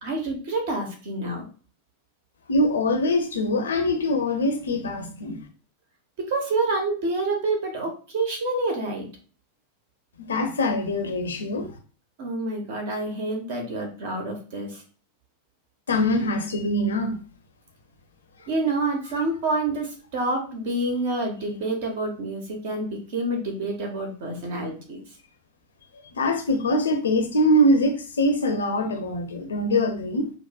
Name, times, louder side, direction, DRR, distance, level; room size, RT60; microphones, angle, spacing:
voice 1, 0.0-1.5 6.2-9.1 12.2-14.8 18.5-25.0, right 2 dB, 50° right, 1.0 m, -28 dB
voice 2, 2.5-5.4 10.3-11.7 15.9-17.2 26.1-30.3, left 1 dB, 70° left, 0.6 m, -23 dB
4.7 x 2.1 x 2.3 m
figure-of-eight pair, 90°, 0 cm